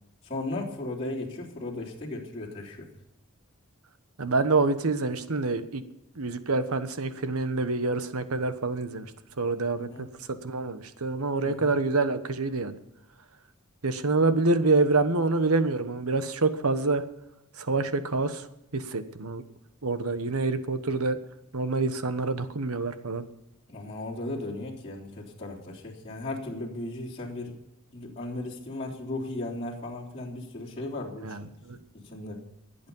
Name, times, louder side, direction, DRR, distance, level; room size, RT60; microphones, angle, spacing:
voice 1, 0.2-2.9 9.7-10.1 11.4-11.7 23.7-27.6 27.9-31.4 31.9-32.4, left 2 dB, 30° left, -6 dB, 3.4 m, -36 dB
voice 2, 4.2-5.8 6.2-9.1 9.4-10.1 10.4-12.7 13.8-17.0 17.6-18.5 18.7-19.4 19.8-21.2 21.5-23.2 31.2-31.8, right 3 dB, 75° right, 11 dB, 1.2 m, -26 dB
22.5 x 8.5 x 5.5 m, 0.84 s
head